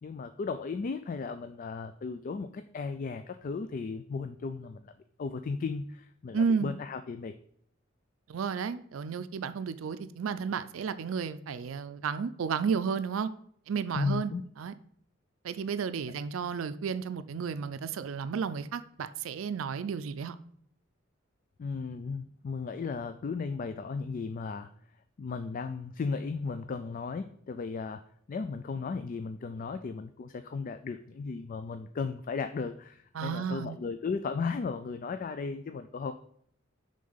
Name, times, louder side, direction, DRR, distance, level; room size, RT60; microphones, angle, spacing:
voice 1, 0.0-4.9 5.2-7.3 14.0-14.4 21.6-24.7 25.2-28.0 28.3-36.1, left 4 dB, 45° left, 0.3 m, -35 dB
voice 2, 6.3-6.7 8.3-13.3 13.7-14.3 14.6-14.7 15.4-20.4 33.1-33.8, right 6 dB, 85° right, 0.4 m, -32 dB
8.5 x 3.8 x 5.5 m
head